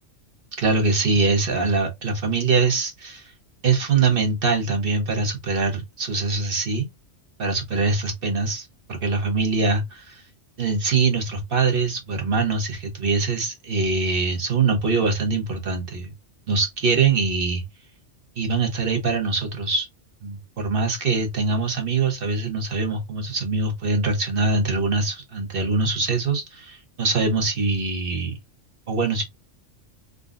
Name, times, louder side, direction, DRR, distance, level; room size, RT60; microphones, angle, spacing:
voice 1, 0.6-3.3 3.6-6.9 7.4-10.2 10.6-16.1 16.5-17.6 18.4-19.9 20.2-28.4 28.9-29.2, right 4 dB, 55° right, 1.0 m, -23 dB
3.6 x 2.2 x 2.4 m
omnidirectional pair, 1.2 m